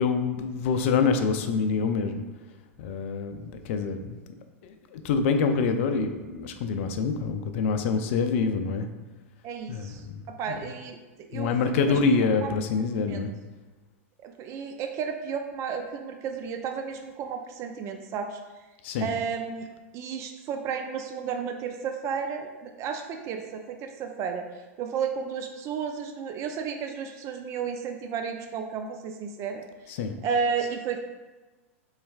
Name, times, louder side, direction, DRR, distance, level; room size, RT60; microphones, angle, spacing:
voice 1, 0.0-2.2 2.8-4.2 4.6-8.9 9.7-10.6 11.3-13.3 18.8-19.1 29.9-30.1, left 5 dB, 60° left, 7 dB, 0.4 m, -26 dB
voice 2, 9.4-11.5 11.8-12.0 12.3-12.5 13.1-13.3 14.2-18.6 19.0-19.7 19.9-24.5 24.8-29.9 30.2-31.0, right 6 dB, 40° right, 5 dB, 0.4 m, -33 dB
4.2 x 3.2 x 2.3 m, 1.2 s
hypercardioid pair, 105°, 8 cm